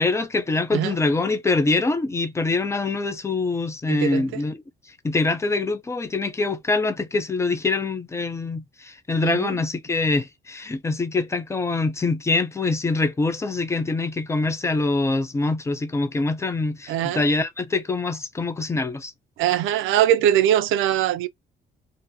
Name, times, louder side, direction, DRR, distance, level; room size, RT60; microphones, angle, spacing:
voice 1, 0.0-4.5 5.0-19.1, left 3 dB, 15° left, 0.5 m, -24 dB
voice 2, 3.9-4.4 9.2-9.6 16.9-17.2 19.4-21.3, right 11 dB, 85° right, 0.4 m, -21 dB
2.5 x 2.1 x 2.6 m
cardioid pair, 90°, 20 cm